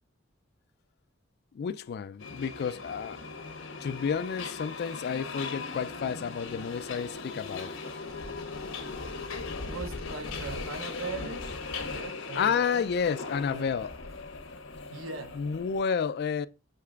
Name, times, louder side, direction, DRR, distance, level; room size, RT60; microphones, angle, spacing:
voice 1, 1.5-3.2 3.8-7.7 12.3-13.9 15.4-16.5, left 6 dB, 55° left, 0.3 m, -30 dB
Subway metro underground, 2.2-15.8, left 4 dB, 80° left, 1.0 m, -39 dB
voice 2, 9.7-12.9 13.5-13.8 14.9-15.4, right 4 dB, 85° right, 0.8 m, -40 dB
6.7 x 3.3 x 2.4 m
head